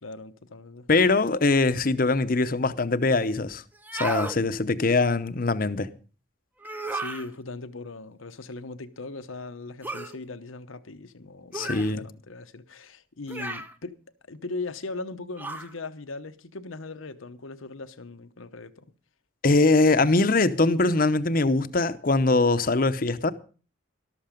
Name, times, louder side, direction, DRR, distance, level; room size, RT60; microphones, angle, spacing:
voice 1, 0.0-0.9 6.9-14.0 14.3-18.9, left 3 dB, 85° left, 1.0 m, -39 dB
voice 2, 0.9-3.6 3.9-5.9 11.5-12.1 19.4-23.3, left 3 dB, 45° left, 0.8 m, -22 dB
sound 1, 3.7-4.4 6.6-7.3 9.8-10.1 11.5-11.9 13.3-13.7 15.4-15.7, right 2 dB, 10° right, 0.8 m, -33 dB
13.5 x 12.5 x 5.1 m
head